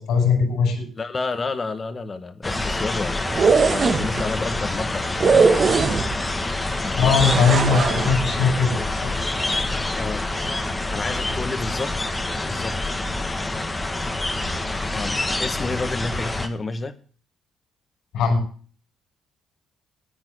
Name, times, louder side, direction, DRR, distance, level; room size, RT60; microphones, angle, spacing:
voice 1, 0.0-0.8 6.9-9.1 18.1-18.4, left 5 dB, 80° left, 5 dB, 6.3 m, -20 dB
voice 2, 0.9-3.2 3.5-5.8 6.8-7.2 10.0-10.2 10.9-11.9 12.3-12.8 14.9-17.0, left 3 dB, 35° left, 10 dB, 1.8 m, -30 dB
sound 1, 2.4-16.5, left 2 dB, 15° left, 1.9 m, -26 dB
sound 2, 3.2-4.2 5.2-6.3 7.2-8.2, right 5 dB, 45° right, 1.7 m, -19 dB
10.5 x 9.4 x 9.6 m, 0.43 s
cardioid pair, 90°, 0 cm